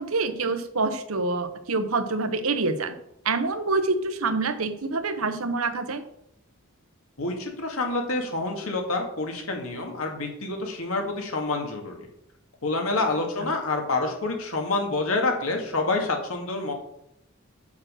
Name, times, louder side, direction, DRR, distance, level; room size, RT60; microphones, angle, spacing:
voice 1, 0.0-2.9 3.2-6.0, right 3 dB, 85° right, 9 dB, 1.0 m, -26 dB
voice 2, 7.2-12.1 12.6-16.7, left 3 dB, 80° left, 2 dB, 2.2 m, -27 dB
7.2 x 6.3 x 6.4 m, 0.75 s
head